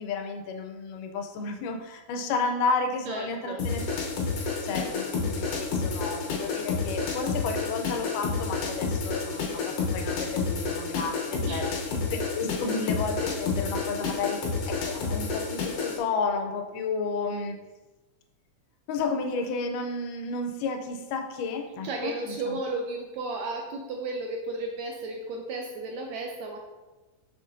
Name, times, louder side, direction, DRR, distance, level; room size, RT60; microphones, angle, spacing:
voice 1, 0.0-3.8 4.2-11.7 12.1-17.6 18.9-22.6, left 4 dB, 90° left, 4 dB, 2.2 m, -32 dB
voice 2, 3.0-3.6 11.4-11.7 21.8-26.6, right 2 dB, 80° right, 2 dB, 1.6 m, -34 dB
sound 1, 3.6-16.0, left 4 dB, 65° left, 1.7 m, -30 dB
6.4 x 6.1 x 2.6 m, 1.2 s
omnidirectional pair, 3.7 m